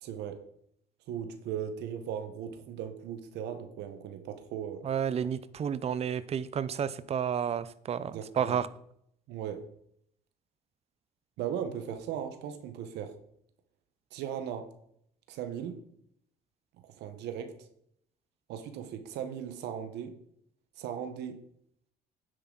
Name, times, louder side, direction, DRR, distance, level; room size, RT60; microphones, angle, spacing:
voice 1, 0.0-0.4 1.1-4.9 8.1-8.6 9.3-9.6 11.4-13.1 14.1-14.7 15.3-15.8 16.8-17.5 18.5-20.2 20.8-21.4, right 8 dB, 80° right, 8 dB, 1.1 m, -38 dB
voice 2, 4.8-8.7, right 8 dB, 40° right, 16 dB, 0.6 m, -31 dB
10.0 x 8.0 x 3.9 m, 0.69 s
cardioid pair, 110°, 17 cm